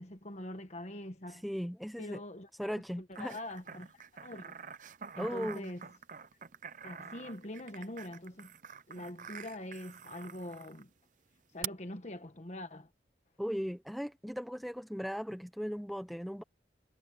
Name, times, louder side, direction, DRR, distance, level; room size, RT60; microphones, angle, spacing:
voice 1, 0.0-1.4 2.0-4.5 5.1-5.9 6.8-8.5 8.9-10.9 11.5-12.9, left 1 dB, 40° left, 1.3 m, -44 dB
voice 2, 1.3-2.2 2.6-3.4 5.2-5.7 13.4-16.4, equal, ahead, 0.7 m, -37 dB
sound 1, 3.1-10.8 11.6-11.7, right 7 dB, 45° right, 0.7 m, -46 dB
head